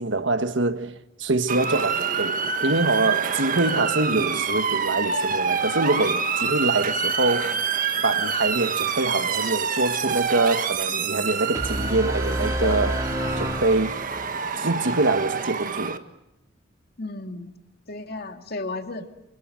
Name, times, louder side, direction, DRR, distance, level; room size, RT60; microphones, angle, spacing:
voice 1, 0.0-7.6 8.0-13.0 13.4-14.0 14.5-16.0, right 2 dB, 65° right, 1.5 m, -25 dB
Motor vehicle (road) / Siren, 1.5-16.0, right 6 dB, 45° right, 1.5 m, -27 dB
sound 1, 3.6-8.6, left 3 dB, 35° left, 3.0 m, -37 dB
sound 2, 11.5-14.5, right 1 dB, 15° right, 2.6 m, -28 dB
voice 2, 12.4-12.9 13.1-13.4 17.0-17.5 17.9-19.1, left 2 dB, 50° left, 2.4 m, -34 dB
28.0 x 25.0 x 7.8 m
head